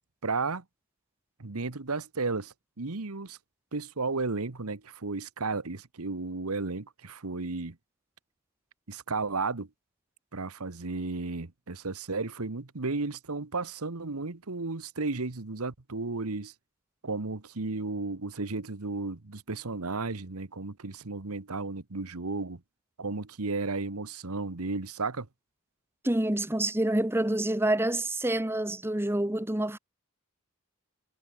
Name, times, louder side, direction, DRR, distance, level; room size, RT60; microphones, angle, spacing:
voice 1, 0.2-0.6 1.4-3.4 3.7-7.8 8.9-9.7 10.3-16.5 17.0-22.6 23.0-25.3, right 3 dB, 80° right, 1.3 m, -33 dB
voice 2, 26.0-29.8, right 1 dB, 10° right, 0.9 m, -27 dB
head